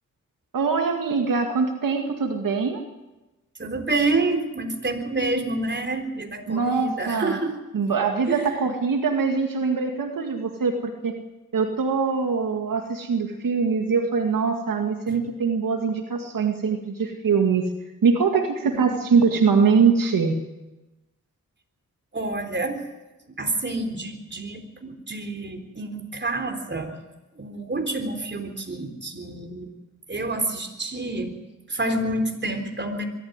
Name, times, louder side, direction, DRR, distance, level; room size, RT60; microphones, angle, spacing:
voice 1, 0.5-2.8 6.5-7.4 7.7-11.2 11.5-17.7 18.0-20.4, right 5 dB, 80° right, 3 dB, 2.1 m, -23 dB
voice 2, 3.6-7.5 8.3-8.5 15.1-15.2 18.7-18.8 22.1-22.8 23.3-26.9 27.4-29.7 30.1-31.3 31.7-33.0, right 2 dB, 35° right, 5 dB, 3.9 m, -28 dB
22.5 x 13.5 x 9.7 m, 1.1 s
cardioid pair, 55°, 33 cm